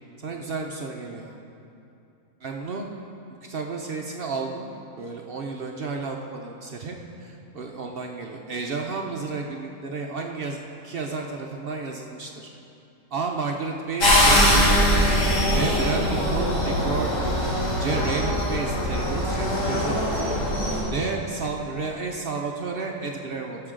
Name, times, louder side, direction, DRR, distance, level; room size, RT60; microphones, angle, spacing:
voice 1, 0.2-1.4 2.4-2.9 3.4-4.7 5.0-12.5 13.1-14.9 15.5-17.3 17.8-20.5 20.9-23.6, right 4 dB, 70° right, 1 dB, 0.5 m, -31 dB
sound 1, 14.0-20.8, equal, 85° left, 3.0 m, -22 dB
16.0 x 6.9 x 3.7 m, 2.7 s
omnidirectional pair, 1.7 m